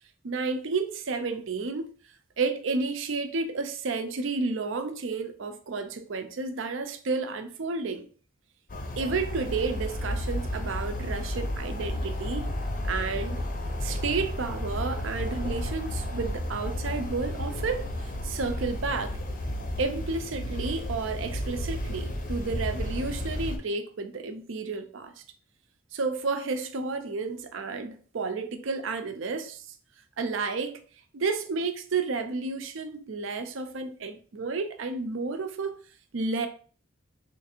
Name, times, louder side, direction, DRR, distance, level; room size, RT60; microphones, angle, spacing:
voice 1, 0.2-1.9 2.4-8.1 9.0-12.5 12.8-13.4 13.8-19.2 19.8-25.1 25.9-29.6 30.2-30.8 31.1-35.8 36.1-36.5, right 4 dB, 65° right, 0.5 m, -31 dB
sound 1, 8.7-23.6, left 1 dB, 40° left, 0.6 m, -32 dB
3.2 x 2.5 x 4.2 m
head